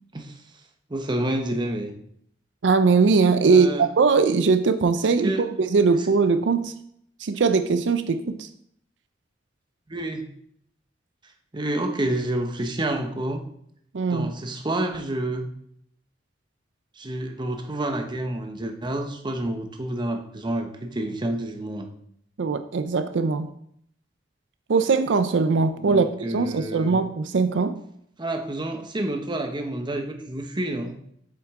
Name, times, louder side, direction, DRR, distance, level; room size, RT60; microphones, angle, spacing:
voice 1, 0.9-1.9 3.4-3.9 5.2-5.4 9.9-10.3 11.5-13.4 14.1-15.5 17.0-21.9 25.8-27.0 28.2-30.9, right 1 dB, 25° right, 4 dB, 0.9 m, -29 dB
voice 2, 2.6-6.7 7.2-8.5 13.9-14.3 22.4-23.5 24.7-27.8, right 4 dB, 75° right, 10 dB, 0.5 m, -21 dB
7.5 x 7.3 x 3.7 m, 0.69 s
head